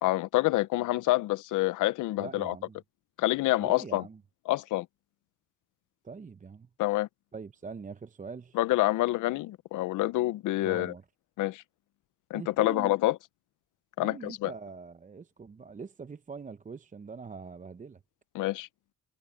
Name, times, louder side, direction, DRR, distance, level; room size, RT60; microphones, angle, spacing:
voice 1, 0.0-2.5 3.2-4.0 4.5-4.9 6.8-7.1 8.5-10.9 11.4-11.6 12.3-13.2 14.0-14.5 18.3-18.7, left 17 dB, 85° left, 0.7 m, -27 dB
voice 2, 2.2-2.8 3.6-4.2 6.0-6.7 7.3-8.6 10.6-11.0 12.3-12.9 14.0-18.0, right 5 dB, 25° right, 0.8 m, -43 dB
cardioid pair, 90°, 30 cm